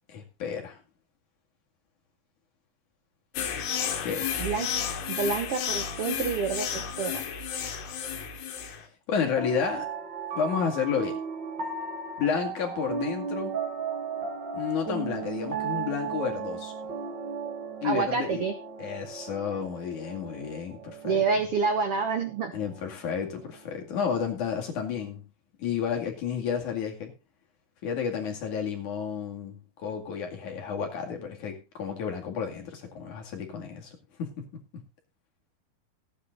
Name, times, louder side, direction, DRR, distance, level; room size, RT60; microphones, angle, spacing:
voice 1, 0.1-0.8 4.0-4.4 9.1-9.9 10.4-11.2 12.2-13.6 14.5-16.7 17.8-18.4 18.8-21.2 22.5-25.2 25.6-27.1 27.8-34.8, left 6 dB, 55° left, 2 dB, 3.5 m, -31 dB
sound 1, 3.4-8.8, left 7 dB, 85° left, 3.7 m, -32 dB
voice 2, 4.4-4.7 5.1-7.2 17.8-18.5 21.0-22.5, right 5 dB, 75° right, 7 dB, 1.3 m, -28 dB
sound 2, 9.3-23.6, right 5 dB, 40° right, 1.8 m, -36 dB
15.0 x 9.6 x 3.9 m, 0.29 s
omnidirectional pair, 4.5 m